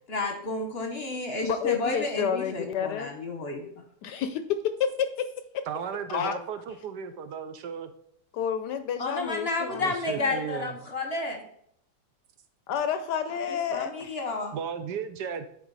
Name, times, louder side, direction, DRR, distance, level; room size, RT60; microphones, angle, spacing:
voice 1, 0.1-3.6 9.0-11.4 13.5-14.5, left 2 dB, 45° left, 3 dB, 0.9 m, -31 dB
voice 2, 1.4-3.1 4.0-5.7 6.1-6.4 8.3-10.3 12.7-14.2, left 8 dB, 75° left, 10 dB, 1.0 m, -30 dB
voice 3, 5.7-7.9 9.7-10.7 14.5-15.5, right 7 dB, 75° right, 9 dB, 1.1 m, -35 dB
10.0 x 4.4 x 4.0 m, 0.67 s
omnidirectional pair, 2.0 m